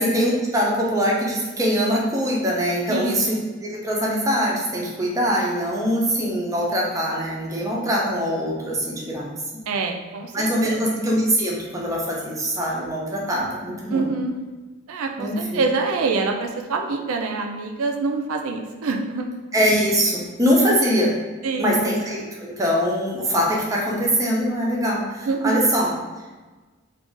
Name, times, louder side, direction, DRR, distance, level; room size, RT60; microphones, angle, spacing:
voice 1, 0.0-3.3 3.6-9.3 10.3-14.1 15.2-15.6 19.5-21.1 21.6-25.9, equal, 15° right, -3 dB, 0.5 m, -22 dB
voice 2, 2.9-3.3 9.7-10.9 13.9-14.3 14.9-19.3 21.4-21.9 25.3-25.6, right 4 dB, 80° right, 3 dB, 0.4 m, -26 dB
2.4 x 2.3 x 3.7 m, 1.3 s
head